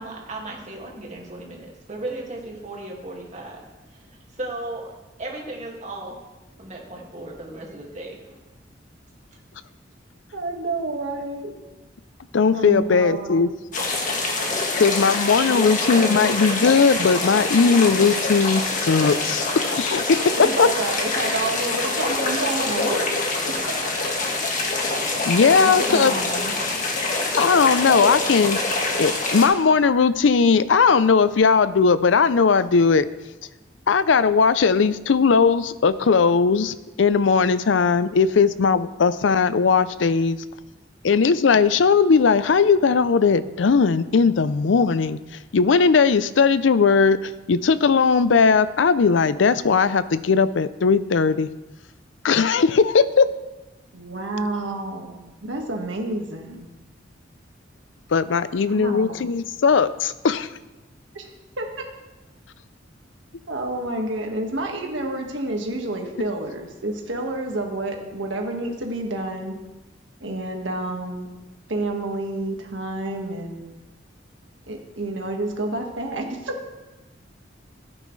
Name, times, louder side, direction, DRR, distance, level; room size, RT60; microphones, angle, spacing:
voice 1, 0.0-4.9 5.2-6.2 6.6-8.4, right 2 dB, 40° right, -2 dB, 2.1 m, -36 dB
voice 2, 10.3-11.5 12.5-13.5 15.5-15.6 20.4-23.2 23.6-23.7 25.6-26.5 53.9-56.7 58.7-59.3 61.1-61.3 61.6-61.7 63.5-69.6 70.2-71.3 71.7-73.7 74.7-76.6, right 2 dB, 90° right, 2 dB, 1.7 m, -29 dB
voice 3, 12.3-13.5 14.8-20.0 20.6-20.7 25.2-26.1 27.4-28.6 29.0-33.1 33.9-40.4 41.0-45.2 45.5-51.5 52.2-53.2 58.1-60.5, left 5 dB, 85° left, 15 dB, 0.5 m, -18 dB
sound 1, 13.7-29.5, left 2 dB, 45° left, 1.6 m, -25 dB
15.0 x 8.8 x 3.2 m, 1.1 s
head